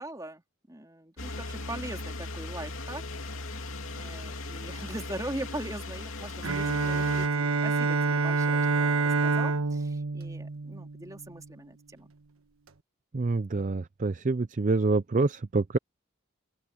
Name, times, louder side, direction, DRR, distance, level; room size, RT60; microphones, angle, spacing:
voice 1, 0.0-3.0 4.0-12.1, right 1 dB, 15° right, 3.5 m, -41 dB
sound 1, 1.2-7.3, left 2 dB, 80° left, 2.7 m, -38 dB
Bowed string instrument, 6.4-11.3, right 4 dB, 90° right, 1.4 m, -27 dB
voice 2, 13.1-15.8, right 3 dB, 35° right, 0.5 m, -26 dB
open air
head